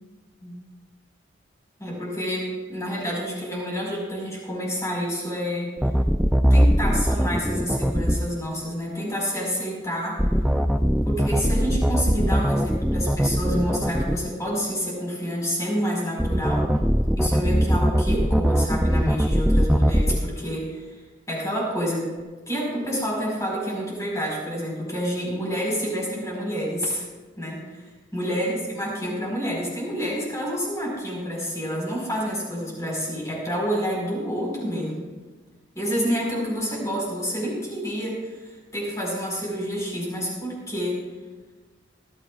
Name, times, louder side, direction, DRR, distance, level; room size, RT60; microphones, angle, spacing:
voice 1, 1.8-5.7 6.5-10.2 11.0-16.7 17.2-20.9 21.3-22.1 22.5-27.0 27.4-27.8 28.1-35.0 35.7-41.0, equal, 15° left, -3 dB, 4.9 m, -28 dB
sound 1, 5.8-8.2 10.2-14.2 16.2-20.2, equal, 5° right, 0.4 m, -20 dB
22.0 x 13.5 x 2.4 m, 1.3 s
head